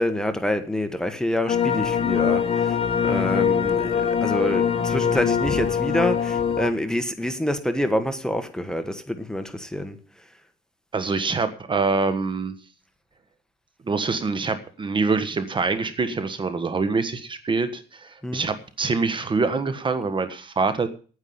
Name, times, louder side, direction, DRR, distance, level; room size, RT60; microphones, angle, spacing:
voice 1, 0.0-2.8 3.0-10.0 18.2-18.4, left 1 dB, 5° left, 1.5 m, -26 dB
sound 1, 1.5-6.7, left 7 dB, 35° left, 2.1 m, -23 dB
voice 2, 10.9-12.6 13.8-20.9, right 4 dB, 30° right, 1.5 m, -25 dB
9.7 x 9.6 x 8.7 m
cardioid pair, 110°, 17 cm